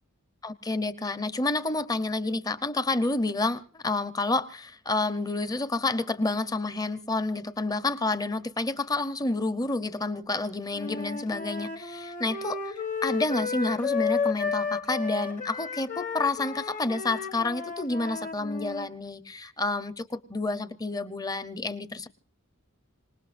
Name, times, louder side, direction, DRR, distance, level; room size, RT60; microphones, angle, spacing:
voice 1, 0.4-22.1, left 2 dB, 20° left, 13 dB, 0.7 m, -29 dB
Wind instrument woodwind instrument, 10.7-18.9, left 5 dB, 35° left, 1.1 m, -32 dB
26.5 x 19.0 x 2.5 m, 0.36 s
head